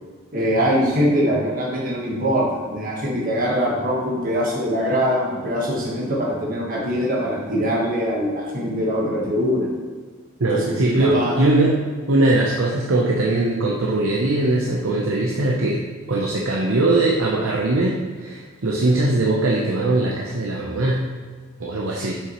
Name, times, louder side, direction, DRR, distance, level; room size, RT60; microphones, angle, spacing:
voice 1, 0.3-9.7 10.4-11.3 22.0-22.1, equal, 40° right, -4 dB, 1.3 m, -23 dB
voice 2, 10.4-11.8 12.1-21.1 21.6-22.1, right 2 dB, 75° right, -2 dB, 0.7 m, -20 dB
6.8 x 5.9 x 3.0 m, 1.6 s
head